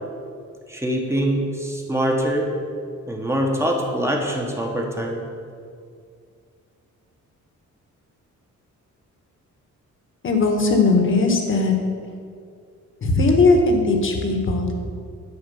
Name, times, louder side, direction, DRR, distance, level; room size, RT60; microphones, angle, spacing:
voice 1, 0.7-2.5 3.1-5.2, equal, 10° right, 1 dB, 1.2 m, -23 dB
voice 2, 10.2-11.7 13.0-14.7, left 3 dB, 40° left, 3 dB, 1.4 m, -18 dB
11.0 x 5.1 x 7.0 m, 2.3 s
wide cardioid pair, 155°, 31 cm